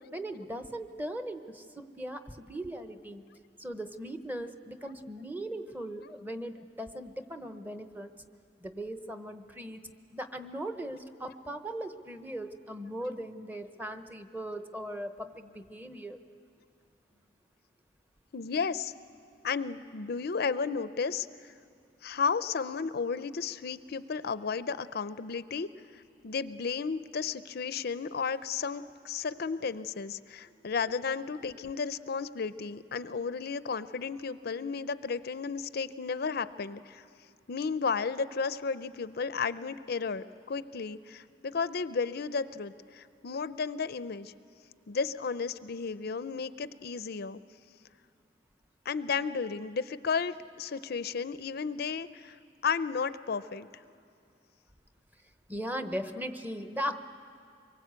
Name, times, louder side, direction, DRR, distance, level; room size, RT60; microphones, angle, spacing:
voice 1, 0.1-3.2 3.6-8.1 8.6-9.8 10.1-16.2 55.5-57.1, right 1 dB, 10° right, 8 dB, 0.9 m, -38 dB
voice 2, 18.3-18.9 19.4-21.5 22.0-37.0 37.5-44.3 44.9-47.4 48.9-52.4 52.6-53.7, left 5 dB, 60° left, 14 dB, 0.5 m, -33 dB
25.0 x 22.5 x 8.2 m, 2.4 s
head